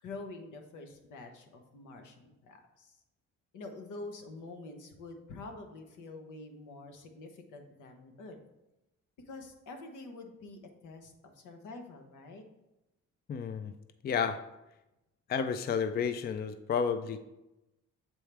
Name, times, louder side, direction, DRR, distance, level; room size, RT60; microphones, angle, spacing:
voice 1, 0.0-3.0 3.5-8.4 9.3-12.4, left 3 dB, 80° left, 5 dB, 1.0 m, -47 dB
voice 2, 13.3-13.7 14.0-14.4 15.3-17.2, left 6 dB, 35° left, 10 dB, 0.4 m, -31 dB
7.2 x 4.5 x 3.4 m, 0.94 s
cardioid pair, 90°, 30 cm